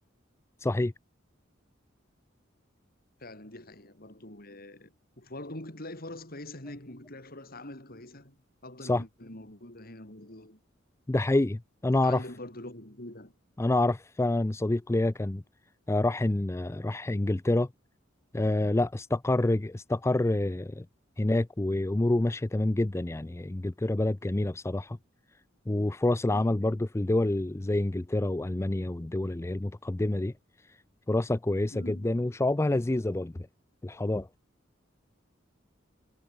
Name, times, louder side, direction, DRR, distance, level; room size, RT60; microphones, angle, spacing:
voice 1, 0.6-0.9 8.8-9.0 11.1-12.2 13.6-15.4 15.9-17.7 18.3-20.8 21.2-25.0 25.7-30.3 31.1-33.3 33.8-34.3, left 2 dB, 15° left, 0.4 m, -27 dB
voice 2, 3.2-8.4 8.6-10.6 11.9-13.3 26.3-26.7 31.7-32.2, left 1 dB, 50° left, 6.0 m, -44 dB
head